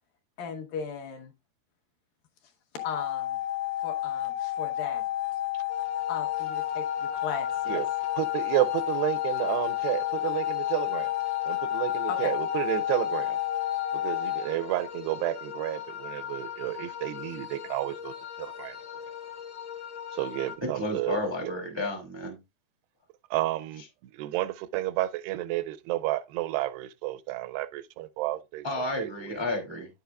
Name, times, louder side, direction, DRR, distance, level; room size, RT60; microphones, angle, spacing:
voice 1, 0.4-1.3 2.8-3.4 3.8-5.1 6.1-7.8 12.1-12.3, left 6 dB, 70° left, 2.5 m, -37 dB
sound 1, 2.8-14.5, left 13 dB, 85° left, 2.8 m, -30 dB
sound 2, 5.7-20.6, left 9 dB, 50° left, 1.4 m, -40 dB
voice 2, 8.2-11.1 11.5-13.4 13.9-18.8 20.1-21.5 23.3-23.8 24.1-29.4, right 16 dB, 85° right, 2.6 m, -31 dB
voice 3, 20.7-22.4 28.6-29.9, left 2 dB, 20° right, 0.6 m, -32 dB
9.8 x 8.0 x 2.4 m
omnidirectional pair, 4.7 m